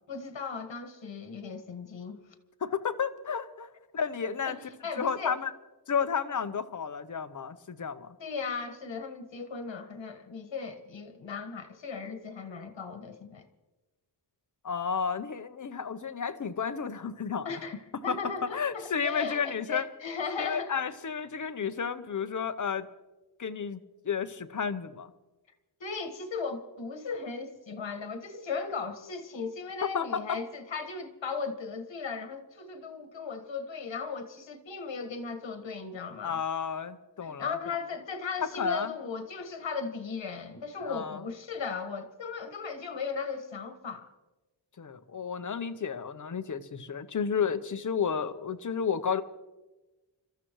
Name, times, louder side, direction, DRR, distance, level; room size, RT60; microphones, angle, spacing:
voice 1, 0.1-2.2 4.4-4.6 4.8-5.4 8.2-13.4 17.5-20.7 25.8-36.4 37.2-44.1, left 5 dB, 75° left, 1.7 m, -37 dB
voice 2, 2.6-4.6 5.0-5.5 5.9-8.2 14.6-17.5 18.1-19.9 20.4-22.9 23.4-23.8 24.0-25.1 29.9-30.4 36.2-37.6 38.6-38.9 40.8-41.2 44.8-49.2, left 6 dB, 45° left, 0.8 m, -32 dB
30.0 x 14.0 x 3.1 m
wide cardioid pair, 145°, 44 cm